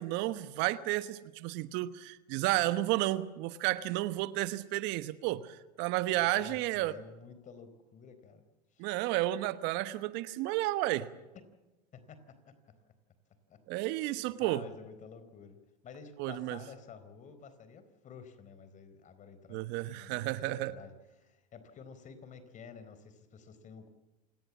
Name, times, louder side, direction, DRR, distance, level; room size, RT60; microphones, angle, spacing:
voice 1, 0.0-6.9 8.8-11.1 13.7-14.6 16.2-16.6 19.5-20.7, right 16 dB, 60° right, 14 dB, 1.2 m, -32 dB
voice 2, 6.2-8.4 8.7-8.9 11.3-11.4 11.9-12.5 13.5-13.6 14.4-23.9, left 6 dB, 35° left, 11 dB, 4.1 m, -51 dB
28.0 x 18.5 x 7.3 m, 1.1 s
hypercardioid pair, 95°, 21 cm